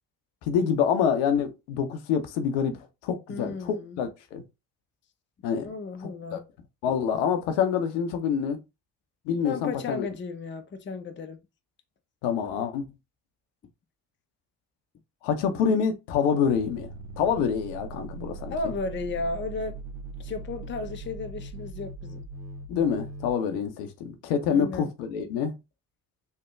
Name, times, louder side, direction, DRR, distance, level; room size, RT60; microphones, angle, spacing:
voice 1, 0.5-4.4 5.4-5.7 6.0-6.4 6.8-8.6 9.3-10.1 12.2-12.8 15.2-16.9 17.2-18.5 22.7-25.5, left 7 dB, 75° left, 0.7 m, -26 dB
voice 2, 3.3-4.0 5.6-6.5 9.4-11.4 18.5-19.8 20.2-22.3 24.5-24.9, left 3 dB, 25° left, 0.6 m, -34 dB
sound 1, 16.5-23.3, right 3 dB, 65° right, 0.7 m, -40 dB
3.3 x 2.1 x 3.0 m
hypercardioid pair, 45°, 48 cm